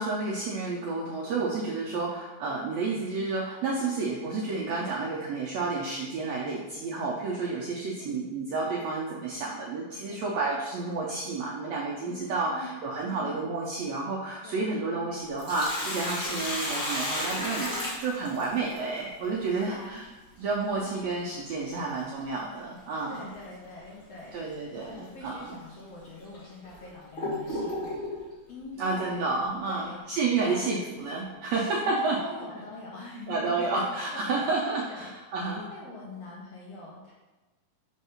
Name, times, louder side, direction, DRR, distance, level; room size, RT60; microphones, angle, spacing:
voice 1, 0.0-17.7 18.0-20.1 20.4-23.3 24.3-25.6 28.8-32.2 33.3-35.6, right 3 dB, 80° right, -3 dB, 1.5 m, -30 dB
voice 2, 12.1-12.7 13.1-13.3 14.4-14.7 17.7-18.0 19.5-20.0 20.7-21.1 23.1-24.4 24.7-28.0 28.5-29.2 29.7-30.0 30.4-30.7 31.5-33.8 34.1-34.5 34.9-35.1 35.4-37.1, left 2 dB, 70° left, -4 dB, 1.5 m, -44 dB
Sink (filling or washing), 15.4-18.8 21.2-21.3 23.1-23.4 23.9-24.0 24.7-24.9 25.6-25.7 26.3-28.2, left 1 dB, 20° left, 1.6 m, -33 dB
5.2 x 3.6 x 5.6 m, 1.2 s
omnidirectional pair, 3.8 m